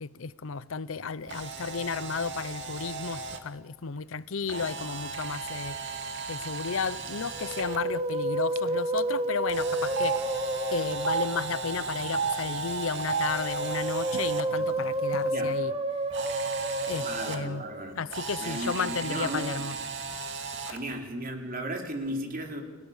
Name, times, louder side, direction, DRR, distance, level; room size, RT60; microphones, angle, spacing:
voice 1, 0.0-6.0 6.3-10.3 10.7-15.7 16.9-17.6 18.0-19.8 20.7-20.8, left 5 dB, 80° left, 0.7 m, -33 dB
Camera, 1.2-3.4 4.5-7.8 9.5-14.4 16.1-17.4 18.1-20.8, right 4 dB, 60° right, 2.3 m, -36 dB
Telephone, 7.1-7.3 7.5-7.7 8.6-8.7 9.0-9.1 9.8-10.2 10.9-11.2 12.0-12.3 13.0-13.3 14.1-14.2 14.5-15.2, right 6 dB, 85° right, 0.9 m, -30 dB
Musical instrument, 7.3-11.9 13.2-18.0 19.2-19.6, right 1 dB, 30° right, 1.6 m, -31 dB
voice 2, 15.3-15.6 17.0-18.0 18.4-19.7 20.7-22.6, right 1 dB, 45° right, 3.9 m, -35 dB
30.0 x 17.5 x 7.2 m
head